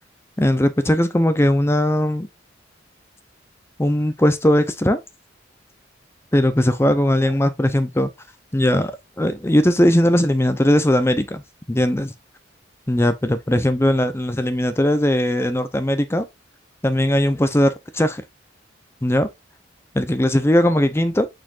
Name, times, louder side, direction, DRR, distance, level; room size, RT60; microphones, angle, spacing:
voice 1, 0.4-2.3 3.8-5.0 6.3-8.1 8.5-11.4 11.7-12.1 12.9-16.3 16.8-18.2 19.0-19.3 19.9-21.3, left 1 dB, 15° left, 0.6 m, -19 dB
8.9 x 4.4 x 2.5 m
head